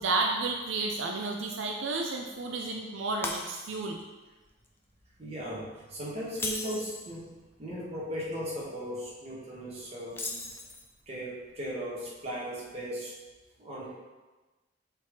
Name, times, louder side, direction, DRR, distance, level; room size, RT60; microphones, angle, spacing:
voice 1, 0.0-4.0 10.3-10.5, right 3 dB, 80° right, 1 dB, 0.5 m, -32 dB
Shatter, 3.2-4.0 4.4-4.7 6.3-7.1 10.1-11.0, left 2 dB, 10° left, 0.5 m, -37 dB
voice 2, 5.2-7.3 7.6-10.3 11.1-13.1 13.6-13.9, equal, 35° right, -6 dB, 1.6 m, -37 dB
6.2 x 4.0 x 3.8 m, 1.2 s
head